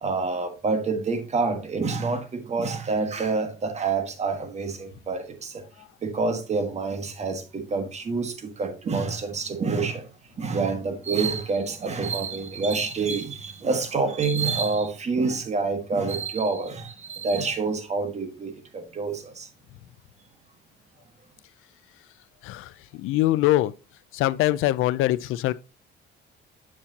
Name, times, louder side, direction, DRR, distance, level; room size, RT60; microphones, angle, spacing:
voice 1, 0.0-5.6 6.0-10.1 10.4-19.5, right 4 dB, 30° right, 1.5 m, -27 dB
voice 2, 22.4-23.7 24.1-25.5, left 16 dB, 80° left, 0.5 m, -23 dB
7.4 x 7.0 x 2.8 m
cardioid pair, 130°, 21 cm